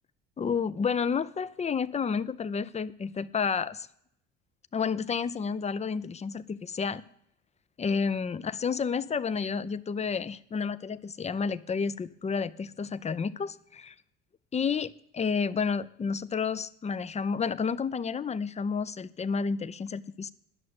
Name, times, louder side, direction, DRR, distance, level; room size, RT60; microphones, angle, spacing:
voice 1, 0.4-3.9 4.7-7.0 7.8-13.9 14.5-20.3, left 5 dB, 20° left, 16 dB, 0.5 m, -30 dB
11.0 x 6.4 x 7.9 m, 0.71 s
supercardioid pair, 80°, 30 cm